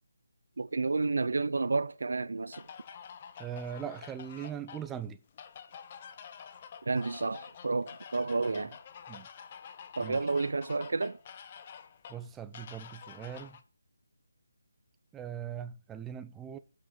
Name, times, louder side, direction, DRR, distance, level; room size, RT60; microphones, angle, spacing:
voice 1, 0.6-2.6 6.9-8.8 10.0-11.2, right 3 dB, 70° right, 0.6 m, -30 dB
sound 1, 2.5-13.6, left 7 dB, 30° left, 0.7 m, -49 dB
voice 2, 3.4-5.2 8.6-8.7 9.1-9.3 10.0-10.2 12.1-13.6 15.1-16.6, right 8 dB, 10° right, 0.4 m, -40 dB
7.7 x 6.0 x 6.4 m
figure-of-eight pair, 160°, 0 cm